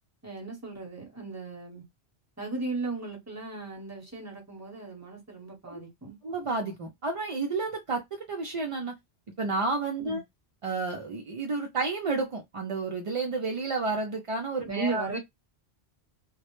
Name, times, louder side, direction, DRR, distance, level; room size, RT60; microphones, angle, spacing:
voice 1, 0.2-1.8 2.4-6.2 10.0-10.2 14.6-15.2, right 3 dB, 15° right, 0.8 m, -36 dB
voice 2, 6.2-8.9 9.4-10.2 10.6-15.2, right 3 dB, 55° right, 0.3 m, -31 dB
2.2 x 2.0 x 2.9 m
omnidirectional pair, 1.1 m